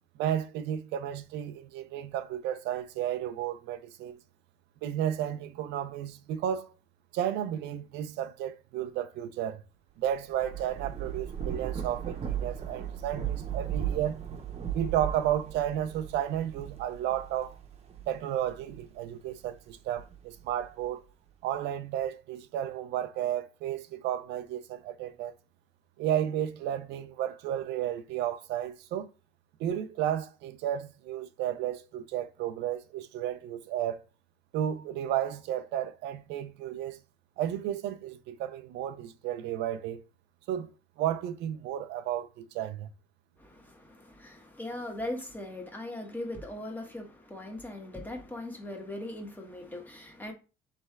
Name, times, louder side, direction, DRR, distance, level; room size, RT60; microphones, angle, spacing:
voice 1, 0.2-4.2 4.8-6.7 7.1-9.6 10.0-14.2 14.7-17.6 18.1-21.0 21.4-25.3 26.0-29.1 29.6-34.0 34.5-37.0 37.4-40.0 40.5-40.7 41.0-42.9, right 11 dB, 85° right, 0.5 m, -32 dB
Thunder / Rain, 10.1-19.0 19.5-20.9, right 9 dB, 40° right, 0.9 m, -37 dB
voice 2, 43.4-50.3, left 1 dB, 10° left, 1.2 m, -39 dB
3.4 x 3.3 x 4.5 m
cardioid pair, 110°, 17 cm